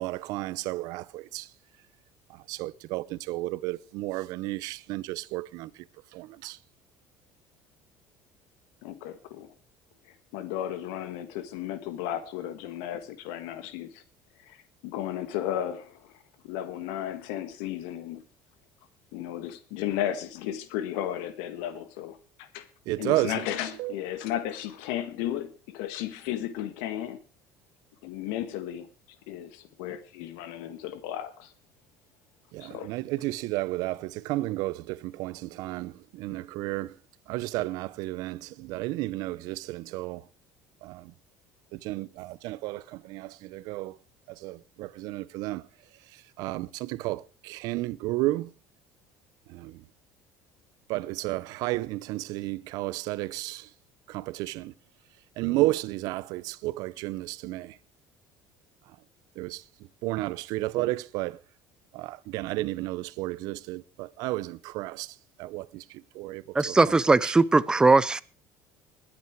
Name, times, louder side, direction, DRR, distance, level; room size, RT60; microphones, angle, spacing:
voice 1, 0.0-1.5 2.3-5.9 6.1-6.6 22.9-23.5 23.8-23.9 32.5-37.0 37.3-40.3 40.8-41.1 41.7-44.0 44.3-45.7 46.0-48.5 49.5-49.8 50.9-53.7 54.1-54.7 55.4-57.8 58.9-59.0 59.4-59.6 60.0-61.4 61.9-67.3, right 18 dB, 70° right, 0.7 m, -32 dB
voice 2, 8.8-9.5 10.3-14.0 14.4-14.6 14.8-16.2 16.4-18.2 19.1-22.7 23.0-27.2 28.0-28.9 29.3-31.5 32.6-32.9, left 11 dB, 85° left, 1.6 m, -34 dB
voice 3, 66.5-68.2, right 3 dB, 10° right, 0.6 m, -20 dB
20.5 x 8.7 x 4.7 m
cardioid pair, 135°, 7 cm